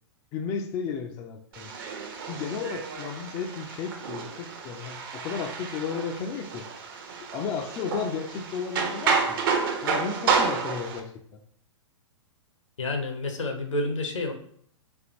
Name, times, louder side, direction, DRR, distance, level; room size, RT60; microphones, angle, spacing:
voice 1, 0.3-1.7 2.3-6.7 7.3-9.4 9.8-11.4, left 6 dB, 20° left, 5 dB, 0.3 m, -33 dB
sound 1, 1.5-11.0, right 5 dB, 45° right, 0.7 m, -30 dB
voice 2, 12.8-14.3, left 2 dB, 75° left, 5 dB, 0.8 m, -29 dB
3.5 x 3.4 x 2.9 m, 0.62 s
figure-of-eight pair, 110°, 16 cm